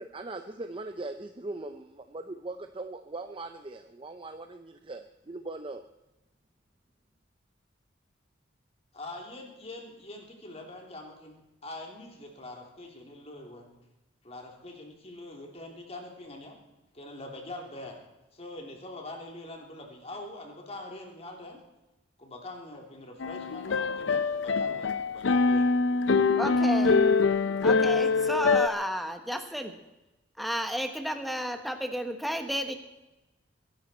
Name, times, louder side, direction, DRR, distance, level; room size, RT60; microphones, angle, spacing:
voice 1, 0.0-5.9, right 2 dB, 25° right, 7 dB, 0.6 m, -40 dB
voice 2, 8.9-13.8 14.2-16.6 16.9-18.0 18.3-21.6 22.2-25.7, left 2 dB, 35° left, 1 dB, 3.2 m, -43 dB
sound 1, 23.2-28.7, left 4 dB, 75° left, 0.6 m, -24 dB
voice 3, 26.4-27.0 27.6-29.7 30.4-32.8, equal, ahead, 6 dB, 1.2 m, -32 dB
22.5 x 11.5 x 4.4 m, 0.99 s
head